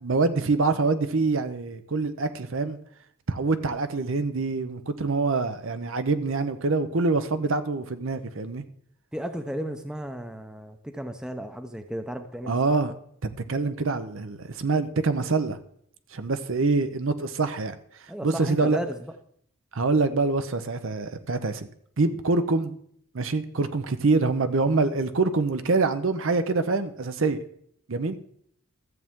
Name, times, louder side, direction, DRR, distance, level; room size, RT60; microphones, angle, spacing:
voice 1, 0.0-2.8 3.3-8.6 12.5-12.9 13.2-15.6 16.1-17.8 18.2-18.8 19.7-21.7 22.0-22.7 23.1-27.4 27.9-28.2, right 3 dB, 70° right, 10 dB, 0.7 m, -25 dB
voice 2, 9.1-12.6 18.1-19.0, equal, 5° right, 7 dB, 0.6 m, -34 dB
13.5 x 7.5 x 3.6 m, 0.67 s
head